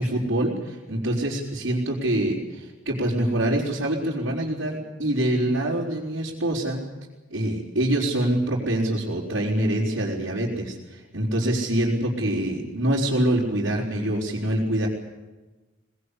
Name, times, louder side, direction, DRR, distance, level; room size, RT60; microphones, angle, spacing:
voice 1, 0.0-6.8 7.3-14.9, right 1 dB, 70° right, -6 dB, 4.5 m, -25 dB
22.5 x 20.5 x 8.5 m, 1.2 s
head